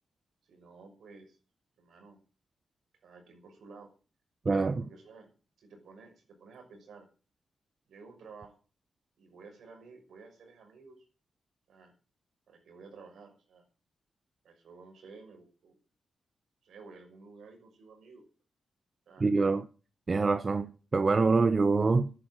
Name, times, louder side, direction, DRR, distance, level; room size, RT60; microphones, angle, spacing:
voice 1, 0.4-1.4 1.8-2.2 3.0-3.9 4.8-5.3 5.6-7.1 7.9-8.6 9.2-11.1 11.7-11.9 12.5-13.6 14.4-15.8 16.6-18.2 19.1-19.3, right 4 dB, 85° right, 6.0 m, -53 dB
voice 2, 4.4-4.9 19.2-19.7 20.1-22.1, right 4 dB, 40° right, 0.9 m, -25 dB
10.5 x 9.9 x 9.0 m
cardioid pair, 80°, 0 cm